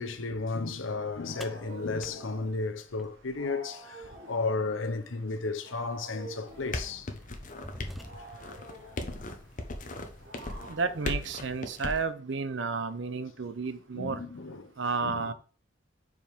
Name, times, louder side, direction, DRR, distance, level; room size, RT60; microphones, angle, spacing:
voice 1, 0.0-7.1 7.8-7.9 13.9-14.7 15.0-15.3, left 3 dB, 85° left, 0.8 m, -33 dB
Wild animals, 0.9-12.1, right 2 dB, 85° right, 1.6 m, -49 dB
sound 1, 1.4-3.6 5.4-5.5 6.4-6.6 7.1-8.6, equal, ahead, 0.5 m, -47 dB
sound 2, 6.5-12.0, left 2 dB, 40° left, 0.9 m, -38 dB
voice 2, 10.7-14.2 14.8-15.3, right 4 dB, 65° right, 0.7 m, -32 dB
5.2 x 4.7 x 5.0 m
head